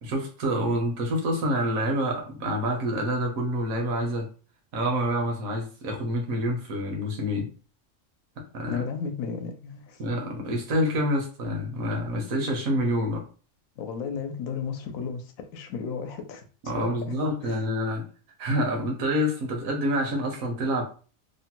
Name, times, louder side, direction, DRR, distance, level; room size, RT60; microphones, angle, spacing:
voice 1, 0.0-4.3 4.7-7.5 8.5-8.8 10.0-13.2 16.6-18.0 18.4-20.8, equal, 80° right, 1.2 m, -27 dB
voice 2, 8.7-10.0 13.8-16.4 16.7-17.1 17.4-17.6, left 6 dB, 80° left, 1.0 m, -34 dB
3.0 x 2.1 x 2.8 m
omnidirectional pair, 1.4 m